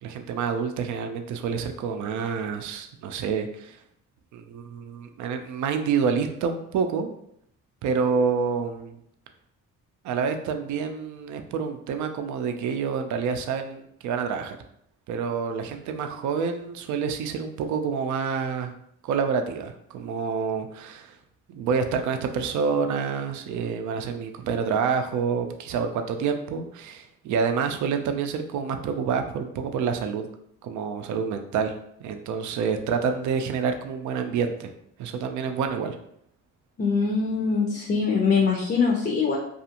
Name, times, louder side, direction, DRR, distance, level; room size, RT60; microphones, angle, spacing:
voice 1, 0.0-3.8 4.3-7.1 7.8-9.0 10.0-14.6 15.1-18.7 19.0-21.1 21.5-30.3 30.6-31.7 32.0-34.7 35.0-36.0, right 6 dB, 75° right, 6 dB, 0.5 m, -28 dB
voice 2, 36.8-39.4, left 5 dB, 35° left, 0 dB, 0.5 m, -23 dB
2.4 x 2.4 x 2.8 m, 0.73 s
cardioid pair, 90°, 30 cm